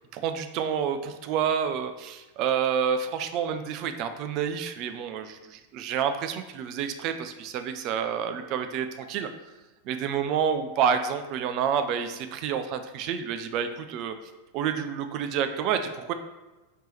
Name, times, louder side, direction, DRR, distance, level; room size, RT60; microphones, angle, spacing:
voice 1, 0.1-9.3 9.9-14.2 14.5-16.1, right 7 dB, 40° right, 8 dB, 0.3 m, -29 dB
3.4 x 2.9 x 4.2 m, 1.1 s
figure-of-eight pair, 90°, 0 cm